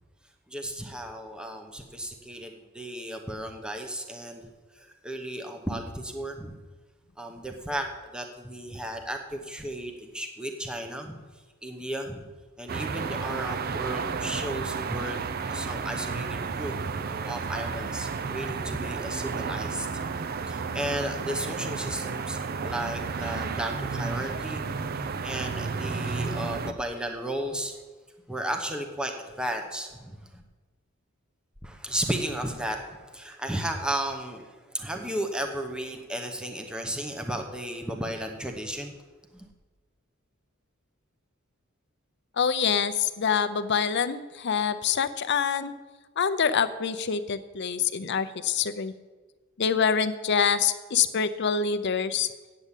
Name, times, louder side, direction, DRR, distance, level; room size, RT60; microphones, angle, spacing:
voice 1, 0.5-4.5 4.8-6.6 7.2-11.2 11.6-12.3 12.6-16.8 17.3-19.9 20.5-24.7 25.2-27.8 28.3-30.4 31.6-38.9 39.3-39.5, right 1 dB, 5° right, 3 dB, 0.9 m, -34 dB
sound 1, 12.7-26.7, right 5 dB, 50° right, 0.5 m, -32 dB
voice 2, 42.4-45.7 46.2-48.9 49.6-52.3, left 6 dB, 60° left, 12 dB, 0.6 m, -26 dB
8.6 x 7.4 x 8.2 m, 1.3 s
head